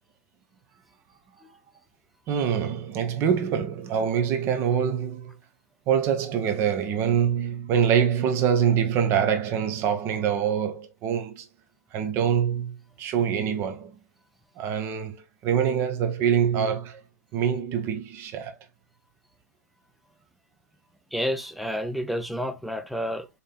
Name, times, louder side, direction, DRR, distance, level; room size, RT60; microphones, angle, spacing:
voice 1, 2.3-5.3 5.9-11.5 11.9-14.0 14.6-17.0 17.3-18.6, right 8 dB, 25° right, 0.9 m, -25 dB
voice 2, 21.1-23.3, equal, ahead, 0.4 m, -29 dB
4.3 x 3.3 x 2.4 m
hypercardioid pair, 125°, 9 cm